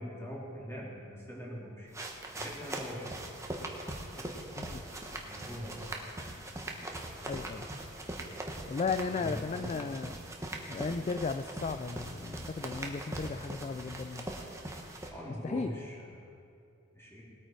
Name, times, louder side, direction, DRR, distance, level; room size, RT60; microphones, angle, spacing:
voice 1, 0.0-1.9 2.4-3.2 4.1-4.4 5.2-6.0 9.1-9.8 15.1-16.4 16.9-17.2, equal, 10° left, -5 dB, 2.9 m, -42 dB
sound 1, 1.9-15.1, right 1 dB, 15° right, 1.1 m, -41 dB
voice 2, 7.3-7.7 8.7-10.2 10.7-14.3 15.4-15.7, left 4 dB, 30° left, 9 dB, 0.3 m, -35 dB
20.0 x 9.0 x 4.5 m, 2.4 s
head